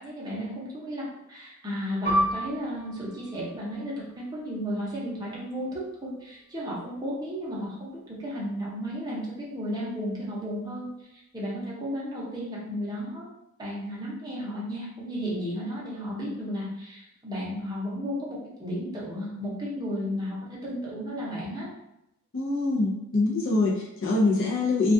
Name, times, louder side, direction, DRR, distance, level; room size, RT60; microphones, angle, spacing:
voice 1, 0.0-10.9 11.3-13.3 13.6-21.7, equal, 20° right, -6 dB, 0.7 m, -33 dB
Piano, 2.1-7.1 7.4-7.6 8.4-8.7, right 1 dB, 35° left, 1.0 m, -33 dB
voice 2, 22.3-24.9, left 3 dB, 60° left, -3 dB, 0.5 m, -24 dB
2.3 x 2.2 x 2.6 m, 0.87 s
head